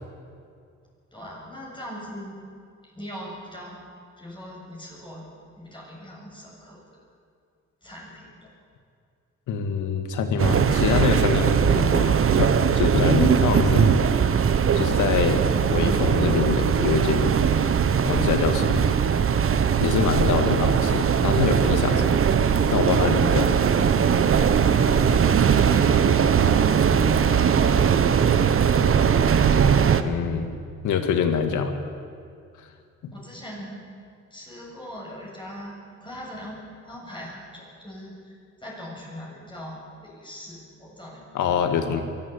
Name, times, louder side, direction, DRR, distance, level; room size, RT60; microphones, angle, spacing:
voice 1, 1.1-2.4 2.8-3.8 4.2-5.3 5.6-6.8 7.8-8.5 24.6-26.7 27.2-28.4 33.1-33.8 34.3-38.3 38.6-41.2, equal, 15° left, -4 dB, 7.4 m, -41 dB
voice 2, 9.5-13.9 14.8-17.3 18.1-18.9 19.8-22.1 22.7-23.5 30.0-30.5 30.8-31.7 33.0-33.1 41.3-42.0, left 6 dB, 80° left, 7 dB, 2.2 m, -25 dB
sound 1, 10.4-30.0, right 7 dB, 45° right, 1.1 m, -20 dB
23.5 x 13.5 x 8.4 m, 2.3 s
cardioid pair, 90°, 30 cm